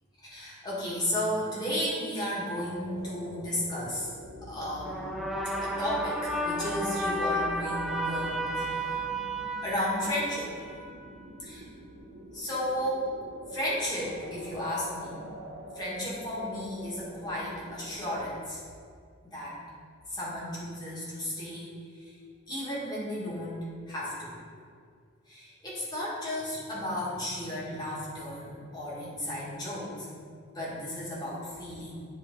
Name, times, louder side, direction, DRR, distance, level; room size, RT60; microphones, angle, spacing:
voice 1, 0.2-4.1 4.4-5.2 5.6-9.0 9.6-10.5 11.4-11.7 12.3-13.0 13.5-15.2 15.7-18.6 19.2-19.5 20.1-21.7 22.0-22.1 22.5-23.6 23.9-24.3 25.3-30.3 30.5-32.1, left 1 dB, 20° left, -7 dB, 1.8 m, -34 dB
sound 1, 2.9-18.2, right 1 dB, 60° right, 0.8 m, -46 dB
sound 2, 4.8-11.2, right 1 dB, ahead, 0.4 m, -32 dB
9.0 x 4.0 x 3.8 m, 2.2 s
head